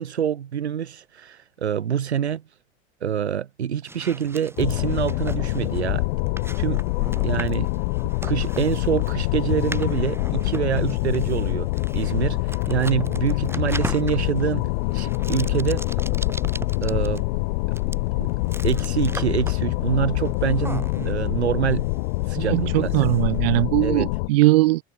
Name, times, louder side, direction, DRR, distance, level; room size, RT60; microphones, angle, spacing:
voice 1, 0.0-2.4 3.0-6.1 6.6-6.9 7.2-7.7 8.2-15.9 16.8-17.2 18.2-18.3 18.6-21.9 22.3-22.9 23.8-24.1, right 9 dB, 75° right, 1.4 m, -26 dB
sound 1, 3.9-23.7, right 2 dB, 5° right, 3.0 m, -40 dB
sound 2, 4.6-24.3, left 25 dB, 55° left, 1.0 m, -25 dB
voice 2, 22.4-24.8, right 19 dB, 60° right, 1.5 m, -20 dB
figure-of-eight pair, 75°, 33 cm